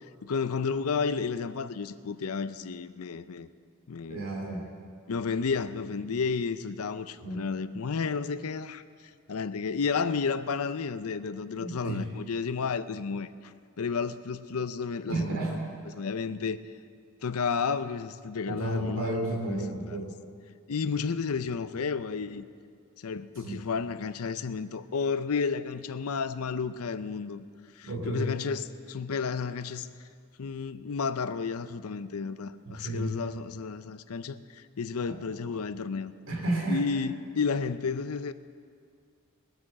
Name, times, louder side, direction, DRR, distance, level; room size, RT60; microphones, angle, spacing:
voice 1, 0.2-3.5 3.9-4.3 5.1-8.8 9.3-15.6 15.9-16.6 17.2-19.2 19.5-20.0 20.7-22.4 23.0-27.5 27.8-29.9 30.4-36.1 36.7-38.3, left 5 dB, 75° left, 13 dB, 0.6 m, -32 dB
voice 2, 4.1-4.6 7.2-7.4 11.6-12.0 15.1-15.5 18.5-20.1 23.4-23.6 27.8-28.3 32.7-33.2 35.0-35.2 36.3-36.8, right 1 dB, 65° right, -1 dB, 2.7 m, -32 dB
19.5 x 7.9 x 7.4 m, 2.2 s
head